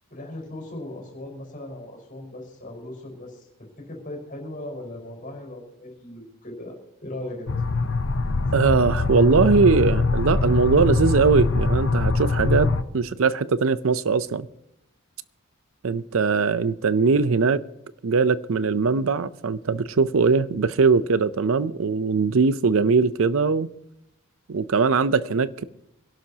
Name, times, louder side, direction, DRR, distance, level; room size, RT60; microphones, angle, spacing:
voice 1, 0.1-3.5 3.8-7.5, left 1 dB, 40° left, 4.9 m, -38 dB
sound 1, 7.5-12.8, left 3 dB, 60° left, 0.7 m, -23 dB
voice 2, 8.5-14.5 15.8-17.6 18.0-23.7 24.5-25.6, right 4 dB, 70° right, 0.6 m, -21 dB
25.5 x 11.5 x 2.8 m
head